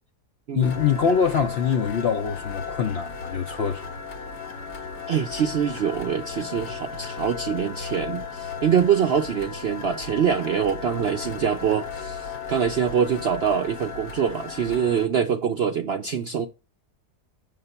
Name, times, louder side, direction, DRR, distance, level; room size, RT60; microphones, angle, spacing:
voice 1, 0.5-3.9, left 6 dB, 60° left, 0.7 m, -24 dB
sound 1, 0.6-15.1, left 5 dB, 85° left, 2.0 m, -35 dB
voice 2, 5.1-16.5, right 7 dB, 65° right, 0.6 m, -24 dB
6.8 x 3.7 x 5.5 m
omnidirectional pair, 1.7 m